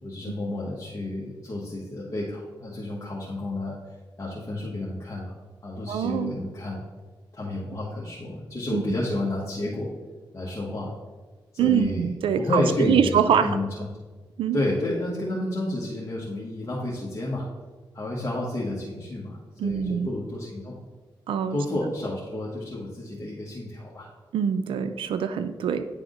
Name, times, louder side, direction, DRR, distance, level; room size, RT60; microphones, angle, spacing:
voice 1, 0.0-3.8 4.2-5.3 5.6-6.8 7.3-9.9 10.3-10.9 11.5-13.9 14.5-17.4 17.9-20.7 21.5-24.1, left 1 dB, 35° left, -6 dB, 1.3 m, -30 dB
voice 2, 5.9-6.3 8.7-8.8 11.6-13.5 14.4-14.6 19.6-20.1 21.3-21.6 24.3-25.9, right 8 dB, 90° right, 10 dB, 0.4 m, -24 dB
9.2 x 3.5 x 3.8 m, 1.3 s
cardioid pair, 80°, 9 cm